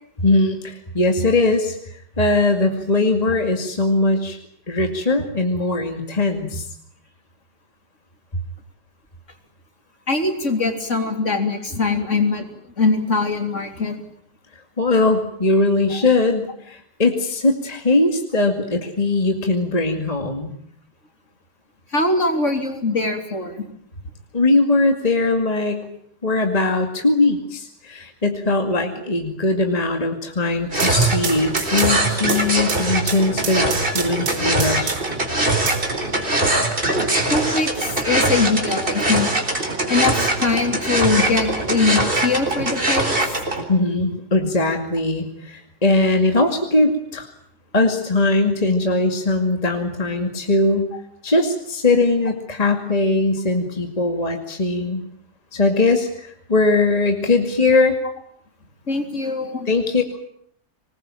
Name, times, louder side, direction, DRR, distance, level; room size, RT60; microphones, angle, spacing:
voice 1, 0.2-1.8 2.2-4.4 4.7-6.7 14.8-20.5 24.3-25.9 26.2-35.1 43.7-47.3 47.7-50.9 51.2-55.0 55.5-58.0 59.7-60.0, left 2 dB, 20° left, 4 dB, 2.3 m, -20 dB
voice 2, 10.1-12.5 12.8-14.0 21.9-23.7 37.3-39.3 39.9-43.2 58.9-59.7, left 3 dB, 45° left, 5 dB, 3.7 m, -22 dB
sound 1, 30.5-35.2 35.7-36.6, right 6 dB, 80° right, 2.3 m, -30 dB
sound 2, 30.7-43.6, right 2 dB, 30° right, 4.4 m, -22 dB
25.5 x 20.5 x 9.0 m, 0.68 s
omnidirectional pair, 1.8 m